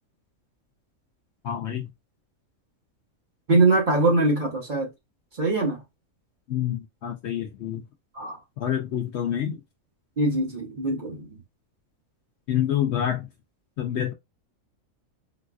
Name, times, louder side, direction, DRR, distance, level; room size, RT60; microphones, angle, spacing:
voice 1, 1.4-1.9 6.5-7.8 8.6-9.6 12.5-13.3 13.8-14.1, left 10 dB, 65° left, 0.7 m, -27 dB
voice 2, 3.5-4.9 5.4-5.8 8.1-8.4 10.2-11.3, right 2 dB, 40° right, 0.9 m, -22 dB
3.9 x 2.4 x 2.3 m
omnidirectional pair, 1.5 m